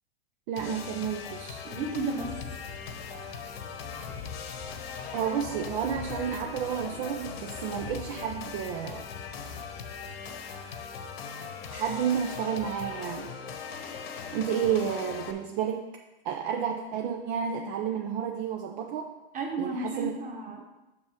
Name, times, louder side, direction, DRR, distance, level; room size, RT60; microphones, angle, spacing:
voice 1, 0.5-1.6 5.1-9.1 11.7-13.4 14.3-15.9 16.2-19.1 19.6-20.1, right 8 dB, 50° right, 2 dB, 0.8 m, -31 dB
sound 1, 0.6-15.3, left 6 dB, 65° left, 1.1 m, -40 dB
voice 2, 1.6-2.3 19.3-20.6, right 3 dB, 25° right, 1 dB, 1.6 m, -33 dB
sound 2, 2.2-11.1, left 5 dB, 20° left, 1.1 m, -46 dB
6.8 x 6.0 x 5.1 m, 1.0 s
hypercardioid pair, 120°, 32 cm